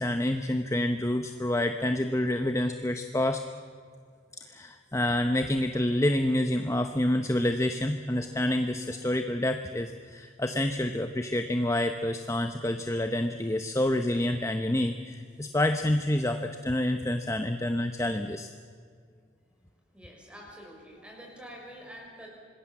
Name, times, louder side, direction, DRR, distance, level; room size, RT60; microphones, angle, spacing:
voice 1, 0.0-3.4 4.4-18.5, left 1 dB, 15° left, 7 dB, 0.8 m, -28 dB
voice 2, 19.9-22.3, equal, 5° right, -1 dB, 5.7 m, -46 dB
26.0 x 20.0 x 7.3 m, 2.1 s
head